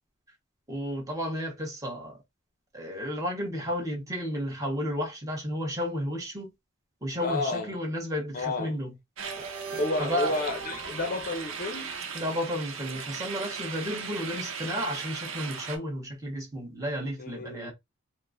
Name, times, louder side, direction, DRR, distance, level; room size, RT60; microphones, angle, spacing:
voice 1, 0.7-2.2 2.7-6.5 7.0-8.9 10.0-10.3 12.1-17.7, equal, 15° right, 1.1 m, -32 dB
voice 2, 7.2-7.7 8.3-8.8 9.7-11.9 17.2-17.7, left 2 dB, 45° left, 0.6 m, -31 dB
sound 1, 9.2-12.3, right 4 dB, 50° right, 0.7 m, -40 dB
sound 2, 9.2-15.8, right 6 dB, 90° right, 0.7 m, -38 dB
4.1 x 2.1 x 2.5 m
head